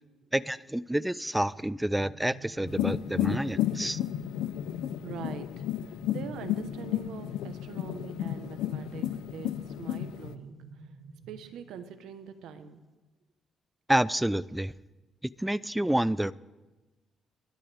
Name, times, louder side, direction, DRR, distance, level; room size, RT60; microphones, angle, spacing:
voice 1, 0.3-4.0 13.9-14.7 15.4-16.3, right 1 dB, 5° right, 0.4 m, -28 dB
sound 1, 1.5-12.0, right 4 dB, 60° right, 6.1 m, -50 dB
sound 2, 2.7-10.4, left 12 dB, 90° left, 0.5 m, -32 dB
voice 2, 5.0-10.5 11.3-12.8, right 8 dB, 85° right, 1.3 m, -43 dB
29.5 x 12.0 x 3.6 m
cardioid pair, 90°, 0 cm